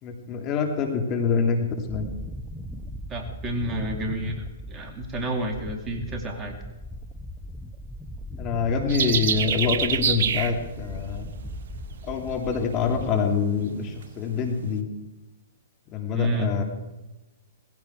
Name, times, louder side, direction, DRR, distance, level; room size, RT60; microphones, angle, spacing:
voice 1, 0.0-2.1 8.4-11.3 12.0-14.9 15.9-16.6, left 5 dB, 35° left, 4 dB, 3.2 m, -26 dB
sound 1, 1.9-13.1, left 1 dB, ahead, 1.0 m, -38 dB
voice 2, 3.1-6.6 16.1-16.6, right 1 dB, 20° right, 3 dB, 2.7 m, -30 dB
sound 2, 8.9-14.8, right 7 dB, 60° right, 1.3 m, -29 dB
19.0 x 16.0 x 4.8 m, 1.0 s
hypercardioid pair, 120°, 0 cm